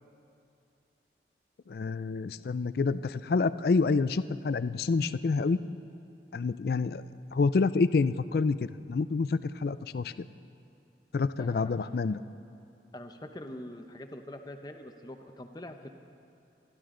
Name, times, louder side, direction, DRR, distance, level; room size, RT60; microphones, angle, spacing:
voice 1, 1.7-5.6 6.3-7.0 7.3-8.6 8.9-10.1 11.1-12.2, left 4 dB, 55° left, 14 dB, 0.4 m, -27 dB
voice 2, 11.4-11.8 12.9-15.9, left 1 dB, 20° left, 6 dB, 0.8 m, -44 dB
25.5 x 12.0 x 3.8 m, 2.7 s
head